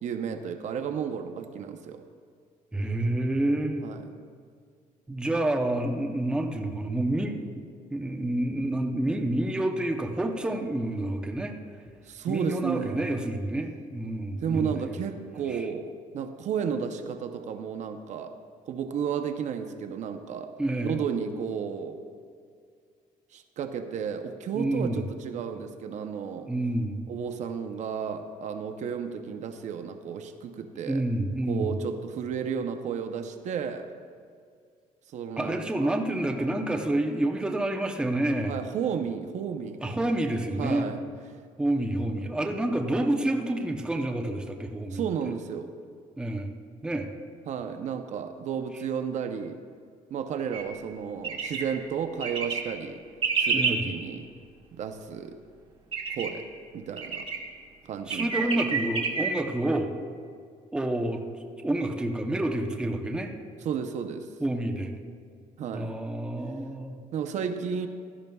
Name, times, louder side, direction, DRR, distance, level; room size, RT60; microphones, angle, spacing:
voice 1, 0.0-2.0 3.8-4.1 12.1-13.3 14.4-18.4 18.7-20.5 20.8-22.0 23.3-26.5 27.1-31.0 31.5-33.9 35.1-36.0 38.5-40.1 40.6-41.0 44.9-45.7 47.5-49.6 50.1-53.0 53.4-54.3 54.7-55.4 56.1-56.5 56.7-57.3 57.9-58.8 63.6-64.3 65.6-65.9 67.1-67.9, right 7 dB, 55° right, 7 dB, 0.6 m, -33 dB
voice 2, 2.7-3.8 5.1-7.6 7.9-11.6 12.3-14.9 15.5-15.7 20.6-21.0 24.5-25.0 26.5-27.1 30.9-31.7 35.4-38.5 39.8-40.9 41.6-45.3 46.2-46.5 46.8-47.1 53.5-53.9 58.1-59.9 60.7-61.2 61.6-63.3 64.4-64.9 65.7-67.0, right 1 dB, 5° right, 2 dB, 0.7 m, -28 dB
sound 1, 50.5-50.6 51.2-51.6 52.2-52.6 53.2-53.7 55.9-56.3 57.0-57.4 58.1-59.3, right 5 dB, 40° right, 1.4 m, -28 dB
16.0 x 12.0 x 2.3 m, 2.1 s
cardioid pair, 155°, 14 cm